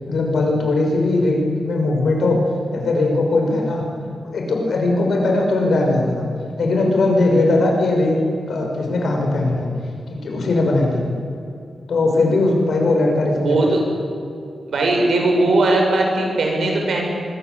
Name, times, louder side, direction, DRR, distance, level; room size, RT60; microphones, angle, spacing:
voice 1, 0.1-2.4 2.7-3.9 4.3-6.2 6.6-8.2 8.5-9.7 10.1-11.1 11.9-13.7, left 2 dB, 60° left, 1 dB, 6.2 m, -19 dB
voice 2, 13.4-13.8 14.7-17.0, right 2 dB, 65° right, 1 dB, 7.1 m, -18 dB
24.0 x 24.0 x 8.4 m, 2.5 s
wide cardioid pair, 175°, 0 cm